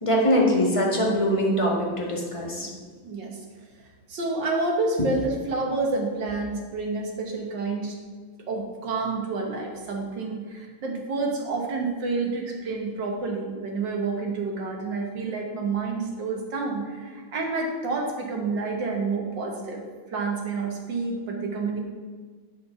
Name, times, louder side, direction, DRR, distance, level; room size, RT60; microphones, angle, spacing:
voice 1, 0.0-2.7, equal, 15° left, -2 dB, 1.4 m, -22 dB
voice 2, 2.6-3.4 4.1-8.0 8.5-19.8 20.1-21.8, right 3 dB, 65° right, 1 dB, 1.9 m, -29 dB
8.2 x 4.6 x 6.8 m, 1.5 s
omnidirectional pair, 2.2 m